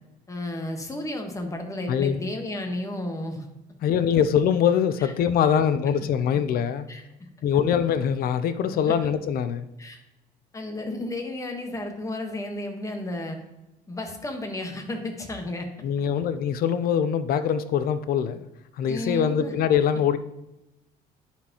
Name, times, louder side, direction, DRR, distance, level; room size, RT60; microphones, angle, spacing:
voice 1, 0.3-3.4 5.0-5.1 6.9-7.0 8.9-9.0 9.8-10.0 10.5-13.4 13.9-15.7 18.9-19.6, left 1 dB, 20° left, 3 dB, 1.2 m, -32 dB
voice 2, 3.8-6.9 7.4-9.7 15.8-18.5 18.8-20.2, left 8 dB, 60° left, 12 dB, 0.5 m, -23 dB
10.5 x 4.3 x 2.9 m, 0.93 s
cardioid pair, 110°, 17 cm